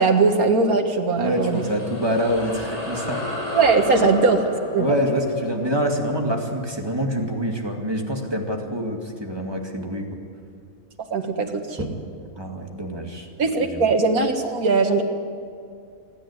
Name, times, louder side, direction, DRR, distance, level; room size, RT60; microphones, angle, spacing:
voice 1, 0.0-1.6 3.5-4.4 4.7-4.9 11.1-11.9 13.4-15.0, right 4 dB, 90° right, 5 dB, 2.1 m, -20 dB
sound 1, 1.1-7.9, left 2 dB, 25° left, 5.2 m, -34 dB
voice 2, 1.2-3.2 4.8-10.0 11.8-11.9 12.4-13.3 13.6-13.8, equal, 15° right, 1 dB, 2.2 m, -26 dB
26.0 x 10.5 x 9.8 m, 2.4 s
omnidirectional pair, 1.5 m